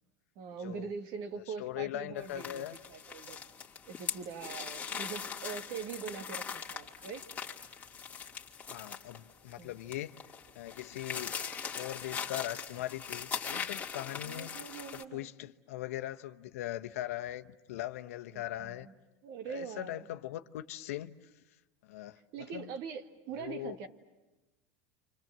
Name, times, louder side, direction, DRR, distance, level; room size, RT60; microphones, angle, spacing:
voice 1, 0.4-3.4 3.9-7.2 9.6-9.7 14.2-15.3 18.3-18.9 19.2-20.1 22.3-23.9, right 6 dB, 60° right, 2.0 m, -43 dB
voice 2, 1.6-2.8 4.9-5.0 8.7-10.1 10.5-11.4 11.7-14.5 14.9-18.9 19.5-21.1 21.8-22.7 23.4-23.8, left 14 dB, 85° left, 1.0 m, -40 dB
sound 1, 2.3-15.0, left 6 dB, 20° left, 2.1 m, -41 dB
29.0 x 26.5 x 7.5 m
supercardioid pair, 115°, 8 cm